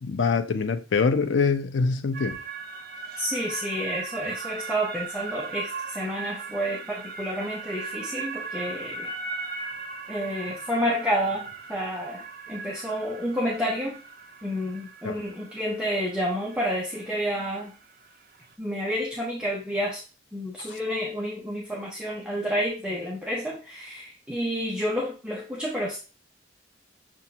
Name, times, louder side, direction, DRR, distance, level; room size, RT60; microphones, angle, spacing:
voice 1, 0.0-2.4 15.0-15.2, left 5 dB, 70° left, 0.5 m, -24 dB
sound 1, 2.1-18.5, right 4 dB, 55° right, 0.6 m, -38 dB
voice 2, 3.2-9.1 10.1-14.0 14.4-17.7 18.6-20.0 20.3-26.0, equal, 5° right, 0.6 m, -30 dB
6.8 x 2.5 x 2.8 m
head